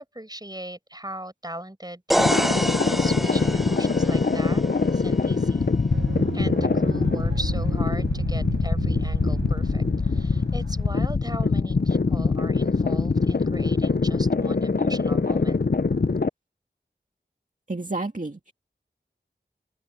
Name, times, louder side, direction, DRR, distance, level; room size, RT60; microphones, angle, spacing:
voice 1, 0.0-5.7 6.3-15.6, right 1 dB, 20° right, 5.6 m, -39 dB
sound 1, 2.1-5.9, equal, ahead, 0.6 m, -28 dB
sound 2, 2.2-16.3, left 4 dB, 55° left, 0.7 m, -23 dB
sound 3, 5.9-10.9, right 4 dB, 75° right, 1.3 m, -33 dB
voice 2, 17.7-18.5, right 2 dB, 45° right, 2.0 m, -30 dB
open air
wide cardioid pair, 45°, 19 cm